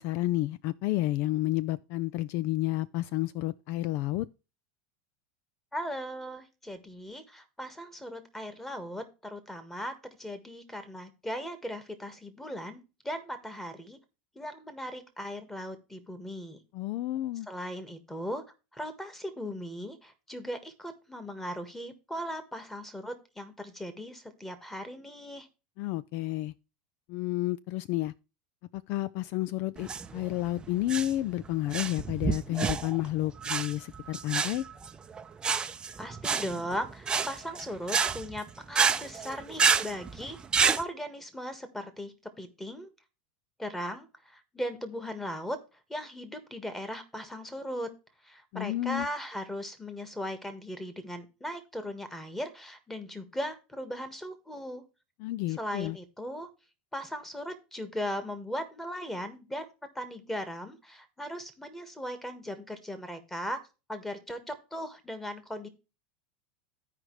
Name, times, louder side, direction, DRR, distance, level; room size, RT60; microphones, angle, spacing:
voice 1, 0.0-4.3 16.7-17.5 25.8-26.5 27.1-28.1 28.7-34.6 48.5-49.1 55.2-56.0, left 16 dB, 55° left, 0.3 m, -31 dB
voice 2, 5.7-14.0 14.3-16.6 17.5-18.4 18.7-25.5 36.0-40.4 40.8-42.9 43.6-45.6 45.9-47.9 48.2-54.8 55.5-56.5 56.9-59.7 59.9-63.6 63.9-65.7, equal, 5° left, 1.5 m, -38 dB
sound 1, 29.8-40.8, right 6 dB, 20° right, 0.6 m, -29 dB
14.5 x 5.0 x 3.1 m
supercardioid pair, 125°, 5 cm